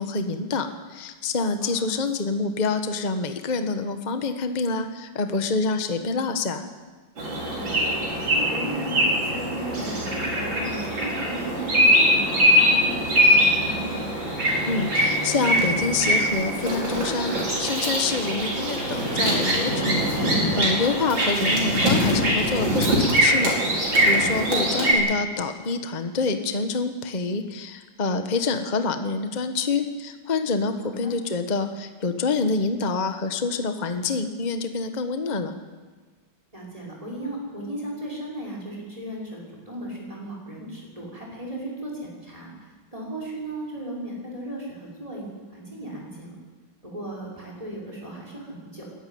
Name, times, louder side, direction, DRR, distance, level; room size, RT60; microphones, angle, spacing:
voice 1, 0.0-6.7 14.7-35.5, left 4 dB, 25° left, 7 dB, 1.2 m, -27 dB
voice 2, 1.6-2.0 6.0-6.2 7.6-14.1 24.4-24.6 30.8-31.2 36.5-46.4 46.8-48.9, right 1 dB, 15° right, -3 dB, 6.0 m, -36 dB
sound 1, 7.2-24.9, equal, 80° right, 5.8 m, -22 dB
22.0 x 14.0 x 9.5 m, 1.4 s
omnidirectional pair, 2.1 m